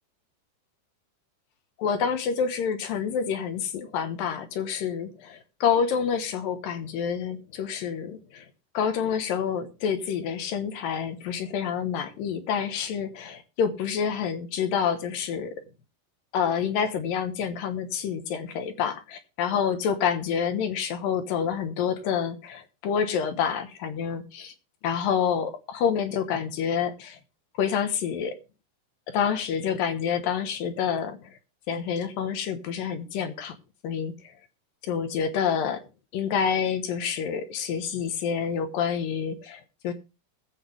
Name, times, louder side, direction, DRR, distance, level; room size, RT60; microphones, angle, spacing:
voice 1, 1.8-8.4 8.7-15.6 16.3-24.5 24.8-27.2 27.6-28.4 29.1-31.2 31.7-33.6 33.8-34.1 34.8-35.8 36.1-39.9, left 7 dB, 90° left, 2.9 m, -28 dB
20.5 x 7.7 x 3.3 m
omnidirectional pair, 3.9 m